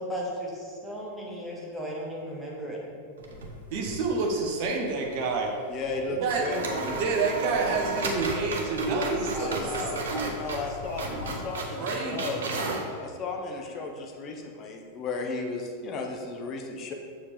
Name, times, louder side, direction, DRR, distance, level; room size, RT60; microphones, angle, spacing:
voice 1, 0.0-2.8, equal, ahead, -5 dB, 1.9 m, -35 dB
sound 1, 3.2-11.4, left 4 dB, 75° left, 1.6 m, -46 dB
sound 2, 3.2-4.0 4.3-4.4 5.9-6.0 6.3-12.9, right 3 dB, 65° right, 0.9 m, -34 dB
voice 2, 3.7-5.5 6.1-6.6 7.0-10.3 11.8-12.6, right 3 dB, 45° right, 0 dB, 1.2 m, -29 dB
voice 3, 5.7-7.0 9.3-12.4 13.0-16.9, left 3 dB, 35° left, 2 dB, 0.9 m, -34 dB
7.2 x 6.9 x 3.6 m, 2.2 s
figure-of-eight pair, 90°, 0 cm